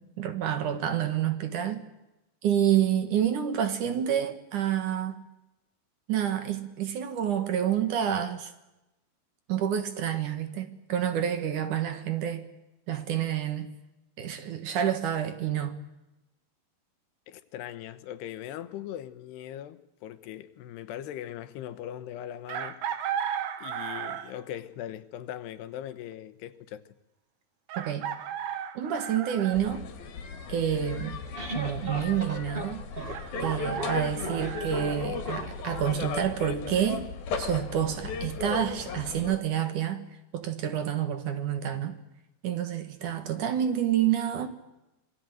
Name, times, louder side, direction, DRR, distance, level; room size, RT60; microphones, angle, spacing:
voice 1, 0.0-1.8 2.4-5.3 6.1-8.5 9.5-12.5 12.9-13.7 14.2-15.8 27.8-28.1 28.7-29.9 30.5-31.2 31.5-32.8 33.4-37.1 37.4-40.1 40.3-42.0 42.4-44.5, right 9 dB, 60° right, 2.6 m, -28 dB
voice 2, 17.3-22.8 23.6-26.8, left 11 dB, 85° left, 3.3 m, -40 dB
Chicken rooster, 22.5-24.4 26.1-26.2 27.7-29.6 33.1-35.0, right 9 dB, 85° right, 3.8 m, -35 dB
sound 1, 29.5-39.4, left 5 dB, 65° left, 3.8 m, -36 dB
sound 2, 30.9-36.0, right 2 dB, 25° right, 1.3 m, -38 dB
26.5 x 20.5 x 9.2 m
omnidirectional pair, 4.7 m